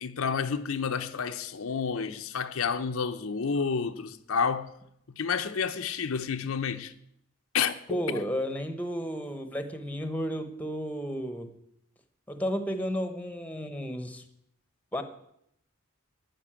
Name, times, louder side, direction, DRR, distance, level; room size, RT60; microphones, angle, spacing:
voice 1, 0.0-4.7 5.2-6.9 7.5-8.2, left 6 dB, 75° left, 0.7 m, -30 dB
voice 2, 7.9-11.6 12.3-14.2 14.9-15.0, equal, 5° left, 0.9 m, -33 dB
12.0 x 5.3 x 8.7 m
head